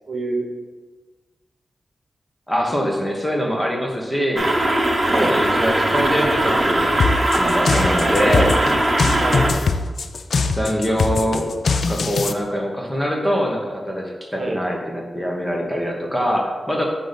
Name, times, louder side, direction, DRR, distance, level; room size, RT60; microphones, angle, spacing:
voice 1, 0.1-0.4 5.1-5.4 8.0-8.8 9.2-9.5 14.4-14.6, right 2 dB, 50° right, 0 dB, 1.0 m, -26 dB
voice 2, 2.5-4.5 5.1-7.0 7.3-8.5 10.5-11.5 11.9-16.9, equal, 10° left, -1 dB, 1.0 m, -23 dB
sound 1, 4.4-9.5, right 1 dB, 30° right, 0.8 m, -20 dB
sound 2, 7.0-12.3, left 4 dB, 70° left, 0.4 m, -21 dB
7.7 x 2.8 x 5.2 m, 1.3 s
wide cardioid pair, 120°, 0 cm